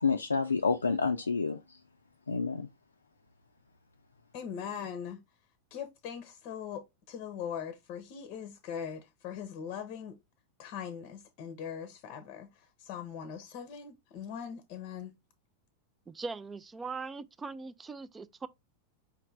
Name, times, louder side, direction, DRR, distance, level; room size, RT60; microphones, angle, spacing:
voice 1, 0.0-1.8 2.3-2.7, left 4 dB, 75° left, 0.4 m, -29 dB
voice 2, 4.3-5.2 5.7-10.2 10.6-12.5 12.8-15.1, left 8 dB, 40° left, 0.7 m, -41 dB
voice 3, 16.1-18.5, right 4 dB, 15° right, 0.4 m, -40 dB
4.9 x 3.3 x 3.1 m
figure-of-eight pair, 90°, 0 cm